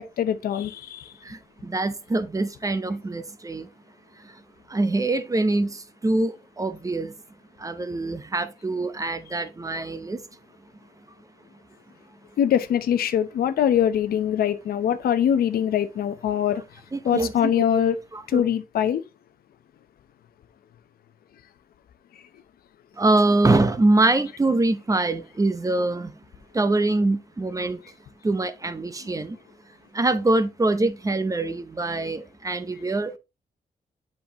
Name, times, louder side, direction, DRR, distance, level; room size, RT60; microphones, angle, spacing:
voice 1, 0.0-1.1 12.4-16.6 17.0-18.0 18.3-19.0, left 9 dB, 85° left, 0.8 m, -23 dB
voice 2, 1.2-3.7 4.2-4.4 4.7-7.1 7.6-10.2 16.9-17.6 18.1-18.4 23.0-26.1 26.5-27.8 28.2-29.4 29.9-33.2, right 2 dB, 20° right, 0.9 m, -24 dB
8.1 x 5.2 x 2.9 m
cardioid pair, 90°, 15 cm